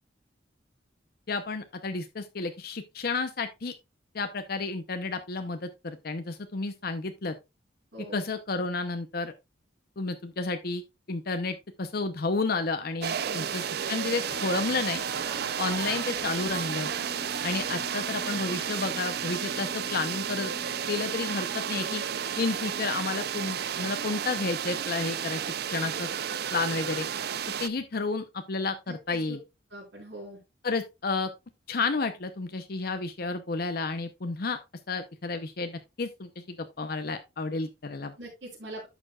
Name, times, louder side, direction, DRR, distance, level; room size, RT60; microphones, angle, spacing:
voice 1, 1.3-3.7 4.1-7.3 8.0-9.3 10.0-10.8 11.1-15.0 15.6-16.9 17.4-20.5 20.9-22.0 22.4-25.4 25.7-26.1 26.5-27.1 27.6-29.4 30.6-31.3 31.7-34.6 34.9-38.1, left 3 dB, 55° left, 0.7 m, -31 dB
voice 2, 7.9-8.3 13.2-13.8 28.9-29.4 29.7-30.4 38.2-38.9, right 1 dB, 80° right, 4.0 m, -43 dB
sound 1, 13.0-27.7, right 8 dB, 60° right, 0.5 m, -32 dB
sound 2, 14.3-23.9, left 2 dB, 20° left, 1.6 m, -46 dB
11.0 x 6.8 x 2.3 m
head